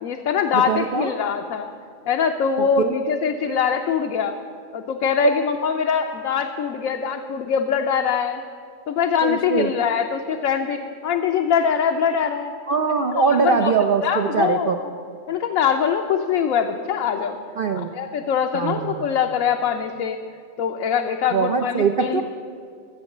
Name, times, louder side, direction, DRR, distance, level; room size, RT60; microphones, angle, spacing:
voice 1, 0.0-1.7 2.1-4.4 4.7-8.4 8.9-12.5 13.3-13.7 14.0-14.8 15.3-17.4 17.7-20.2 20.6-22.2, left 7 dB, 75° left, 3 dB, 1.1 m, -23 dB
voice 2, 0.5-1.1 2.6-2.9 3.4-3.5 5.2-5.3 9.2-9.7 12.7-14.8 17.6-17.9 18.5-19.1 21.3-22.2, right 5 dB, 60° right, 6 dB, 0.5 m, -22 dB
14.5 x 7.3 x 7.2 m, 2.3 s
omnidirectional pair, 1.4 m